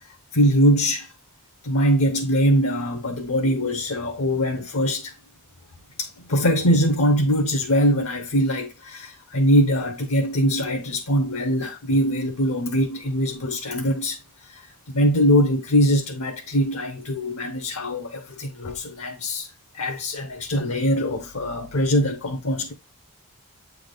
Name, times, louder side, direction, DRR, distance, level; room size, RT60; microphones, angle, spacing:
voice 1, 0.3-1.1 1.6-5.1 6.0-22.7, equal, 80° left, 0.9 m, -22 dB
8.0 x 3.5 x 3.8 m
head